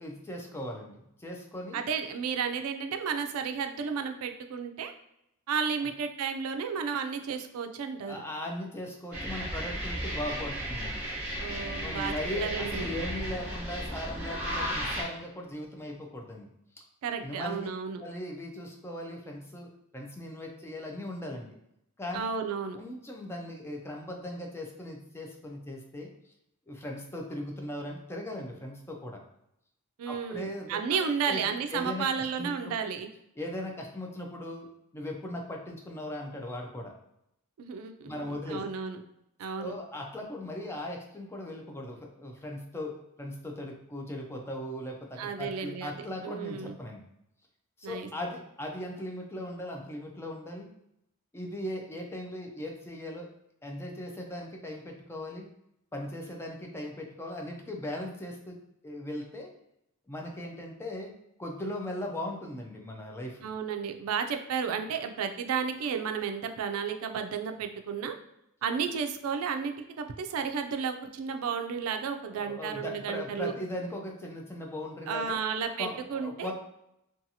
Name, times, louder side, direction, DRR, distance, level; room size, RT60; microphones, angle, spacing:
voice 1, 0.0-1.8 8.0-11.1 11.8-16.5 17.2-17.6 18.0-21.5 22.0-22.2 22.8-26.1 26.7-29.2 30.1-30.8 31.3-32.7 33.4-34.7 34.9-36.9 38.0-38.6 39.6-47.0 47.8-50.7 51.3-53.3 53.6-55.5 55.9-58.6 58.8-59.5 60.1-61.1 61.4-63.5 72.3-75.4 75.8-76.5, left 1 dB, 10° left, 1 dB, 0.3 m, -38 dB
voice 2, 1.7-4.9 5.5-8.1 11.4-12.1 12.4-12.9 17.0-18.0 22.1-22.8 30.0-33.1 37.6-39.0 39.4-39.7 45.2-45.9 46.2-46.8 47.8-48.1 63.4-68.1 68.6-73.5 75.1-76.5, right 6 dB, 80° right, 7 dB, 0.3 m, -32 dB
sound 1, 9.1-15.0, equal, 5° right, 1.0 m, -34 dB
2.6 x 2.3 x 2.7 m, 0.80 s
head